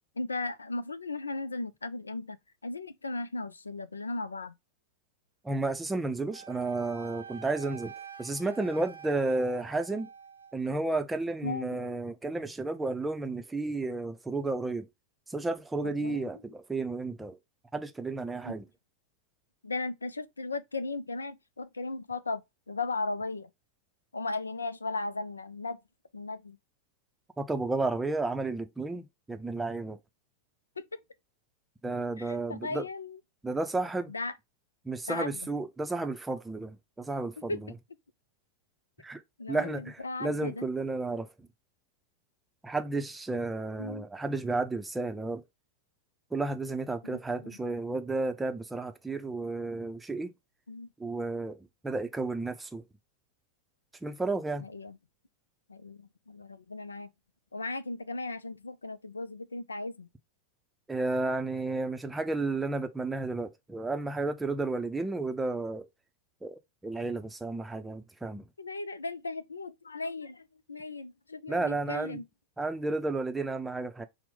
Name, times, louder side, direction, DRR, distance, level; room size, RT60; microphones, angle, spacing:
voice 1, 0.2-4.5 11.4-11.8 15.8-16.4 18.4-18.6 19.6-23.5 24.1-25.8 26.1-26.6 30.8-31.0 32.2-33.2 34.1-34.3 35.1-35.5 37.4-37.6 39.4-40.7 43.8-44.1 47.0-47.6 50.7-50.9 54.6-55.0 55.7-57.1 57.5-60.1 68.6-72.2, left 3 dB, 75° left, 0.4 m, -37 dB
voice 2, 5.4-7.9 8.2-10.1 10.5-14.9 15.3-17.4 17.7-18.7 27.4-30.0 31.8-32.8 33.4-34.1 34.8-37.6 39.0-39.2 39.5-41.5 42.6-45.4 46.3-50.3 51.0-51.6 51.8-52.8 54.0-54.7 60.9-65.9 66.4-68.4 71.5-72.2 72.6-74.1, right 3 dB, 10° right, 0.6 m, -32 dB
Wind instrument woodwind instrument, 6.3-10.6, right 7 dB, 80° right, 0.8 m, -47 dB
5.8 x 2.1 x 3.6 m
figure-of-eight pair, 90°, 0 cm